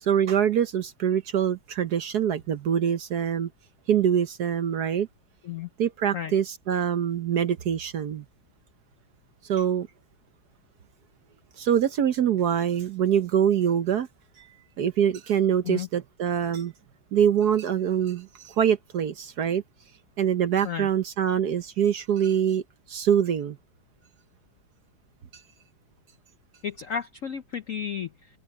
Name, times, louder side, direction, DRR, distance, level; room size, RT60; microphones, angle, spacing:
voice 1, 0.0-3.5 3.9-5.1 5.8-8.2 9.5-9.9 11.6-14.1 14.4-14.5 14.8-16.7 17.1-19.6 20.2-22.6 22.9-23.6, right 9 dB, 60° right, 1.2 m, -24 dB
voice 2, 26.6-28.4, left 8 dB, 75° left, 0.7 m, -33 dB
open air
omnidirectional pair, 2.3 m